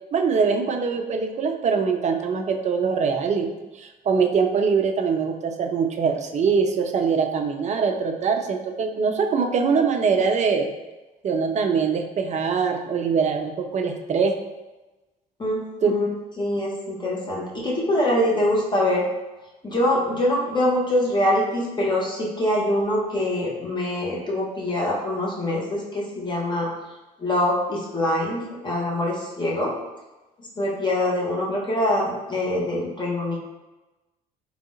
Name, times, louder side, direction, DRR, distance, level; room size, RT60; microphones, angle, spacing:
voice 1, 0.1-3.5 3.8-10.7 11.2-14.3 15.8-15.9, right 5 dB, 35° right, 5 dB, 0.5 m, -23 dB
voice 2, 15.4-16.1 16.4-19.1 19.6-26.7 27.2-29.7 30.4-33.4, left 1 dB, 20° left, -4 dB, 1.2 m, -24 dB
3.6 x 3.1 x 2.6 m, 1.1 s
hypercardioid pair, 50°, 20 cm